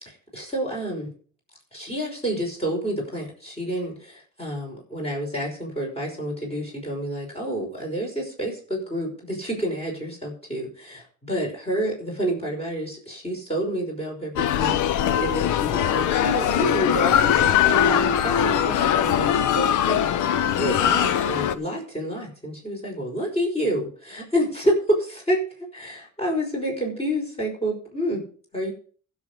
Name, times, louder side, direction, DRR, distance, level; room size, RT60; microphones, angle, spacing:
voice 1, 0.3-1.1 1.7-25.4 25.7-28.2 28.5-28.7, right 1 dB, 20° left, -1 dB, 5.4 m, -29 dB
sound 1, 14.4-21.6, left 10 dB, 80° left, 0.8 m, -21 dB
15.5 x 6.5 x 5.3 m, 0.44 s
cardioid pair, 90°, 30 cm